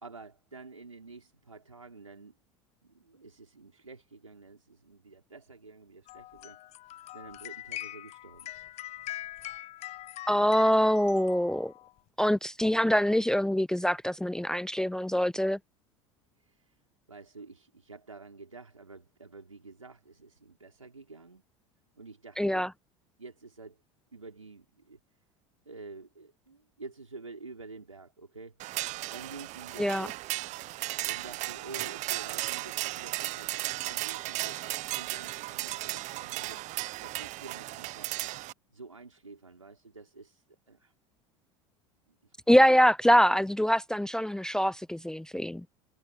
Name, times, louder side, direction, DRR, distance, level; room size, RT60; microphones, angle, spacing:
voice 1, 0.0-2.4 2.8-6.6 7.1-8.5 16.4-16.8 17.1-21.4 21.9-22.7 23.2-23.8 24.1-25.0 25.6-28.6 29.1-30.2 31.0-38.1 38.7-40.9 42.1-42.3, right 3 dB, 90° right, 4.5 m, -49 dB
sound 1, 6.1-11.9, left 15 dB, 40° left, 0.8 m, -43 dB
voice 2, 10.3-11.7 12.2-15.6 22.4-22.7 29.8-30.1 42.5-45.6, equal, 5° left, 0.6 m, -24 dB
sound 2, 28.6-38.5, right 18 dB, 45° right, 1.2 m, -35 dB
figure-of-eight pair, 75°, 16 cm